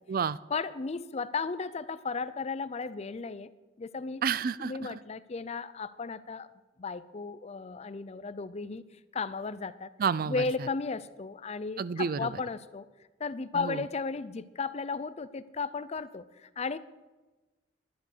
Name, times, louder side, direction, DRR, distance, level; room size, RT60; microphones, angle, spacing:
voice 1, 0.5-3.5 3.8-4.2 4.6-6.5 6.8-8.8 9.1-9.9 10.3-12.8 13.2-16.8, left 4 dB, 35° left, 15 dB, 0.5 m, -35 dB
voice 2, 4.2-5.0 10.0-10.4 11.8-12.4 13.5-13.8, right 6 dB, 50° right, 18 dB, 0.4 m, -30 dB
11.5 x 11.0 x 6.7 m, 1.2 s
head